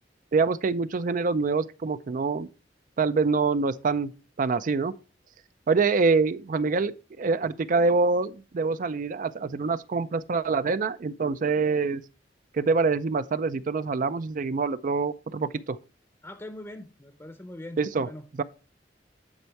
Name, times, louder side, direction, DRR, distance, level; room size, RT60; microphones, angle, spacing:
voice 1, 0.3-2.5 3.0-4.1 4.4-4.9 5.7-6.9 7.2-12.0 12.5-15.8 17.8-18.1 18.4-18.5, right 4 dB, 50° right, 0.4 m, -25 dB
voice 2, 16.2-18.2, left 1 dB, 15° left, 0.7 m, -42 dB
9.7 x 4.4 x 4.5 m
head